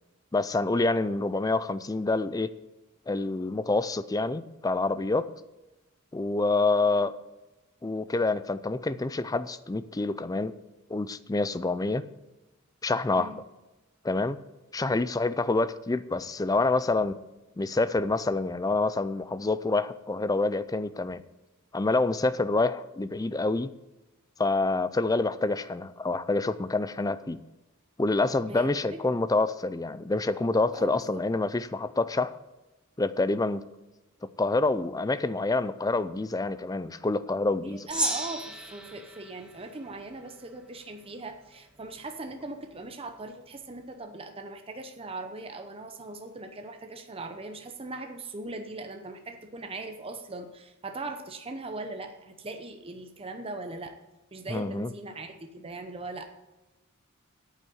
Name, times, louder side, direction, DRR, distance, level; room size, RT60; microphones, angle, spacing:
voice 1, 0.3-2.5 3.1-5.3 6.1-7.2 7.8-10.5 10.9-12.0 12.8-13.4 14.0-14.4 14.7-17.2 17.6-21.2 21.7-23.7 24.4-27.4 28.0-32.4 33.0-33.6 34.4-37.9 54.5-54.9, left 3 dB, 15° left, 14 dB, 0.4 m, -27 dB
voice 2, 13.1-13.4 28.5-29.2 30.7-31.2 37.6-54.0 54.3-56.3, right 2 dB, 25° right, 6 dB, 0.8 m, -40 dB
Gong, 37.9-40.5, right 1 dB, 5° right, 1.4 m, -34 dB
9.1 x 8.3 x 7.9 m, 1.1 s
head